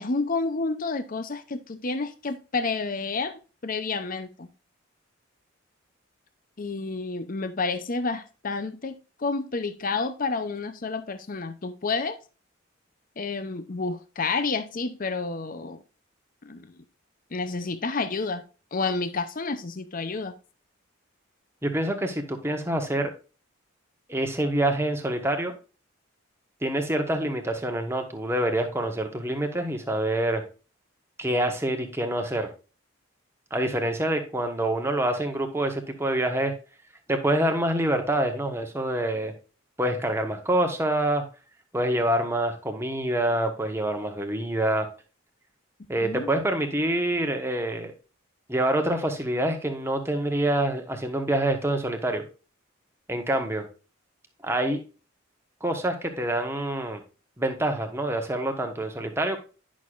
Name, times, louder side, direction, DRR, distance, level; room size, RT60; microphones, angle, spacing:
voice 1, 0.0-4.5 6.6-12.2 13.2-15.8 16.5-16.8 17.3-18.4 18.7-20.3 46.0-46.3, left 4 dB, 40° left, 11 dB, 0.6 m, -30 dB
voice 2, 21.6-23.1 24.1-25.5 26.6-30.4 31.2-32.5 33.5-36.5 37.1-39.3 39.8-41.2 41.7-44.9 45.9-47.9 48.5-52.2 53.1-53.7 54.4-54.8 55.6-57.0 57.4-59.4, right 1 dB, 10° right, 5 dB, 1.2 m, -26 dB
10.5 x 6.3 x 2.5 m, 0.34 s
head